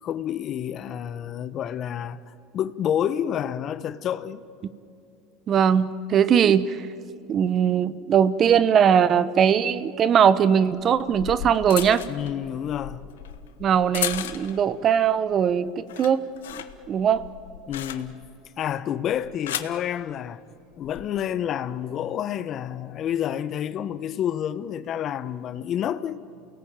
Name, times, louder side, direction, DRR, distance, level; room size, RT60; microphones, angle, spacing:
voice 1, 0.0-4.4 12.1-13.1 17.7-18.3 18.6-20.4 20.8-26.2, left 10 dB, 45° left, 1.0 m, -29 dB
voice 2, 5.5-6.8 7.3-12.0 13.6-16.2 16.9-17.2, right 8 dB, 40° right, 1.0 m, -20 dB
sound 1, 9.5-9.6 10.8-14.7 15.2-15.5 15.8-18.4 19.1-19.8 20.7-21.0, left 11 dB, 85° left, 1.1 m, -35 dB
28.5 x 18.5 x 8.9 m
hypercardioid pair, 90°, 0 cm